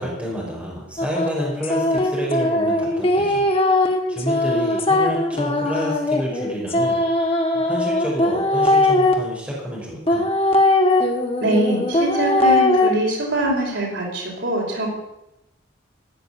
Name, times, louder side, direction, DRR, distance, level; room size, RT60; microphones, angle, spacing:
voice 1, 0.0-3.4 4.1-7.0 7.5-10.2, equal, 5° right, -4 dB, 5.3 m, -28 dB
sound 1, 1.0-9.1 10.1-12.9, left 2 dB, 30° left, 1.9 m, -20 dB
voice 2, 11.4-14.9, right 1 dB, 75° right, -3 dB, 5.6 m, -23 dB
16.0 x 9.0 x 8.4 m, 0.92 s
head